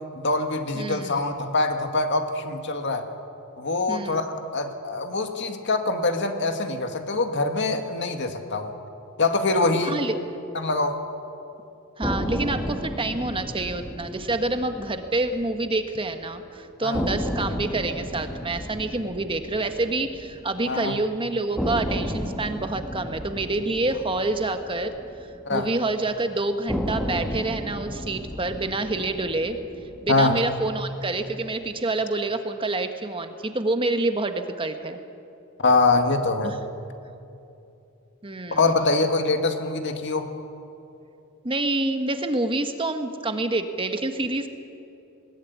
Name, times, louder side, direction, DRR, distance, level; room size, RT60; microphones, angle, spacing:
voice 1, 0.1-3.1 3.6-4.3 4.5-8.7 9.2-10.0 10.5-11.0 16.8-17.1 20.7-20.9 25.5-25.7 30.1-30.4 35.6-36.6 38.5-40.3, left 3 dB, 55° left, 6 dB, 1.9 m, -24 dB
voice 2, 0.7-1.1 3.9-4.2 9.8-10.1 12.0-24.9 25.5-29.6 30.0-35.0 36.4-36.6 38.2-38.7 41.4-44.5, right 2 dB, 25° right, 7 dB, 1.4 m, -27 dB
sound 1, 12.0-16.1 16.4-16.5 16.9-21.0 21.6-25.9 26.7-31.0, equal, 5° left, 1.8 m, -33 dB
21.0 x 19.5 x 9.5 m, 2.8 s
head